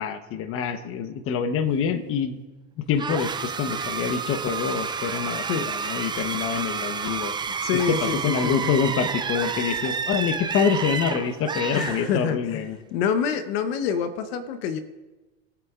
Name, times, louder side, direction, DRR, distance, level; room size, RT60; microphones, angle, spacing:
voice 1, 0.0-2.4 2.8-7.3 7.7-8.0 8.2-12.8, left 7 dB, 45° left, 9 dB, 1.1 m, -26 dB
sound 1, 3.0-12.5, right 5 dB, 15° right, 0.5 m, -30 dB
voice 2, 7.6-8.7 11.7-12.7 12.9-14.8, left 7 dB, 70° left, 9 dB, 1.1 m, -26 dB
22.0 x 7.9 x 2.5 m, 1.1 s
hypercardioid pair, 105°, 32 cm